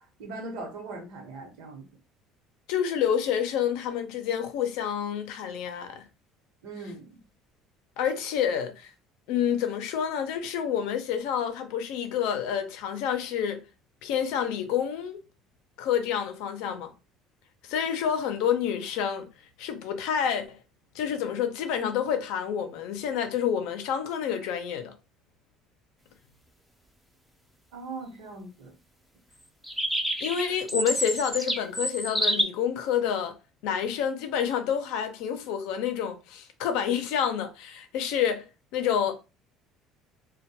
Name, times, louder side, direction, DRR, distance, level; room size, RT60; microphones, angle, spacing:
voice 1, 0.0-1.9 6.6-7.2 27.7-28.7, right 3 dB, 80° right, 0.9 m, -40 dB
voice 2, 2.7-6.0 8.0-8.9 9.3-13.6 14.0-15.2 15.8-16.9 17.6-19.3 19.6-20.6 20.9-24.9 30.2-33.4 33.6-38.4 38.7-39.1, left 8 dB, 80° left, 0.5 m, -28 dB
sound 1, 29.6-32.4, equal, ahead, 0.4 m, -28 dB
2.2 x 2.2 x 2.7 m
cardioid pair, 145°, 0 cm